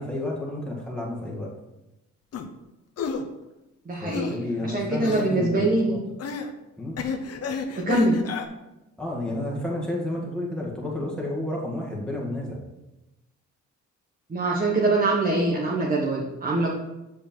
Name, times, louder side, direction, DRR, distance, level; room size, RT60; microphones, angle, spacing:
voice 1, 0.0-1.5 4.0-6.0 6.8-7.0 9.0-12.6, left 1 dB, 5° left, -3 dB, 1.9 m, -31 dB
sound 1, 2.3-2.5 3.0-3.2 4.1-4.4 5.0-5.3 6.2-6.5 7.0-8.5, left 5 dB, 55° left, 0.9 m, -30 dB
voice 2, 3.9-6.0 7.7-8.2 14.3-16.7, right 2 dB, 30° right, -2 dB, 1.3 m, -24 dB
7.4 x 5.0 x 4.6 m, 0.97 s
cardioid pair, 90°, 30 cm